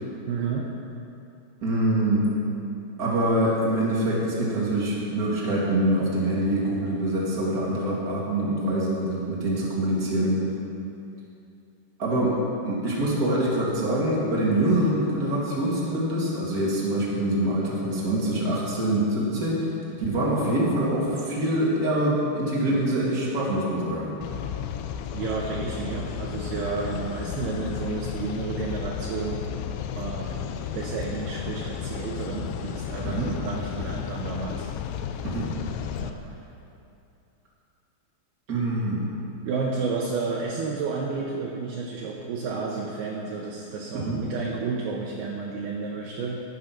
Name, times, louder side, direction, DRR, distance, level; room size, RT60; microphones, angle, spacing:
voice 1, 0.3-0.7 25.1-29.4 29.9-34.7 36.0-36.2 39.4-46.4, right 4 dB, 75° right, -2 dB, 2.4 m, -31 dB
voice 2, 1.6-2.3 3.0-10.4 12.0-12.3 12.6-19.7 20.0-24.1 33.0-33.3 35.2-35.5 38.5-39.0 44.0-44.2, right 1 dB, 45° right, -6 dB, 1.1 m, -25 dB
sound 1, 24.2-36.1, left 8 dB, 85° left, 3.1 m, -33 dB
11.5 x 10.0 x 6.0 m, 2.7 s
omnidirectional pair, 5.5 m